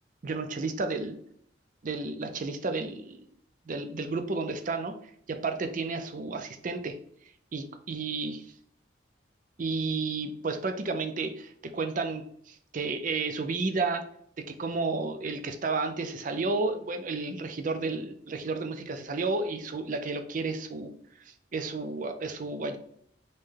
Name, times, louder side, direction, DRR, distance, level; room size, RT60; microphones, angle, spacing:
voice 1, 0.2-1.1 1.8-3.3 3.7-4.9 5.3-7.0 7.5-8.4 9.6-14.0 14.4-20.9 21.3-22.8, right 3 dB, 45° right, 8 dB, 0.4 m, -32 dB
5.3 x 2.2 x 3.3 m, 0.65 s
head